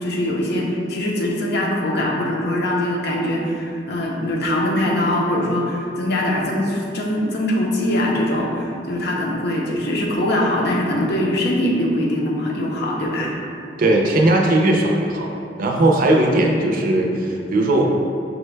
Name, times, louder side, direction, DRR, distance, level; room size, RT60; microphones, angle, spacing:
voice 1, 0.0-13.4, left 1 dB, 60° left, -2 dB, 0.6 m, -22 dB
voice 2, 13.8-15.3 15.6-17.9, right 1 dB, 50° right, 1 dB, 0.5 m, -18 dB
5.9 x 2.2 x 3.2 m, 2.6 s
head